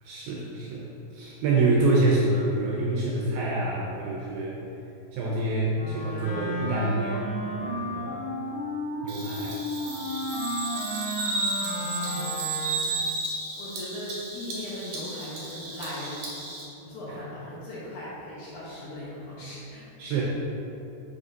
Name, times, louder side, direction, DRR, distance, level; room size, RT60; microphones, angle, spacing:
voice 1, 0.0-4.6 5.1-7.2 7.5-8.2 9.0-9.6 10.0-10.1 17.1-17.2 20.0-20.2, right 2 dB, 85° right, -3 dB, 2.2 m, -27 dB
Wind instrument woodwind instrument, 5.7-13.0, left 1 dB, 60° left, 1.9 m, -33 dB
Bird vocalization bird call bird song, 9.1-16.6, right 3 dB, 65° right, 2.0 m, -33 dB
voice 2, 11.8-12.7 13.6-16.3 16.8-19.9, left 1 dB, 75° left, -8 dB, 1.7 m, -39 dB
7.7 x 6.2 x 2.7 m, 2.9 s
omnidirectional pair, 5.0 m